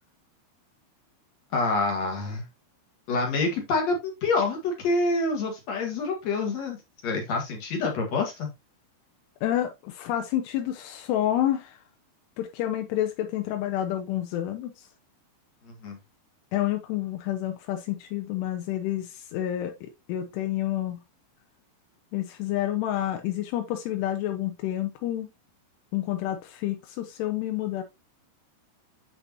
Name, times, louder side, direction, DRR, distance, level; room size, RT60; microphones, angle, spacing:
voice 1, 1.5-2.4 3.1-6.8 7.0-8.5 15.7-16.0, left 3 dB, 55° left, 2.0 m, -27 dB
voice 2, 9.4-11.8 12.4-14.9 16.5-21.0 22.1-25.3 25.9-27.8, left 12 dB, 80° left, 2.5 m, -29 dB
7.5 x 6.6 x 2.8 m
omnidirectional pair, 5.4 m